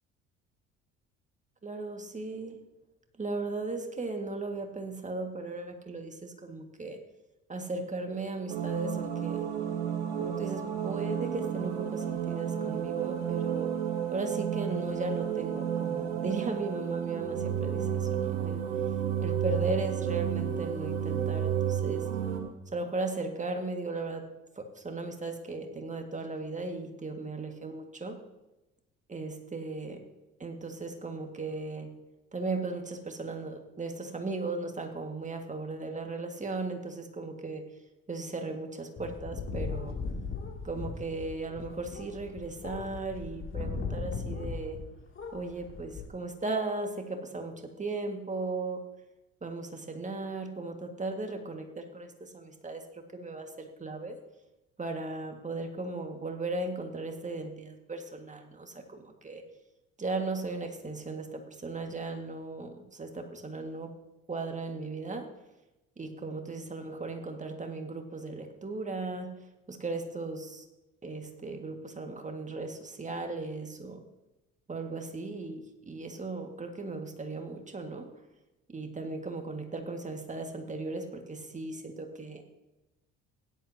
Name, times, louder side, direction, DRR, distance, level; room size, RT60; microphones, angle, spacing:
voice 1, 1.6-2.6 3.2-7.0 7.5-9.5 10.2-13.7 14.1-18.6 19.2-22.1 22.7-24.3 24.6-28.2 29.1-30.0 30.4-31.9 32.3-37.6 38.1-40.0 40.6-44.8 45.3-48.8 49.4-54.2 54.8-59.4 60.0-63.9 64.3-65.3 66.0-69.3 69.7-70.7 71.0-74.0 74.7-78.1 78.7-82.4, right 3 dB, 20° right, 4 dB, 2.0 m, -37 dB
sound 1, 8.5-22.4, right 9 dB, 80° right, 1.5 m, -31 dB
sound 2, 39.0-44.9 45.1-46.1, left 4 dB, 35° left, 2.7 m, -38 dB
16.5 x 11.0 x 2.9 m, 0.98 s
hypercardioid pair, 60°, 33 cm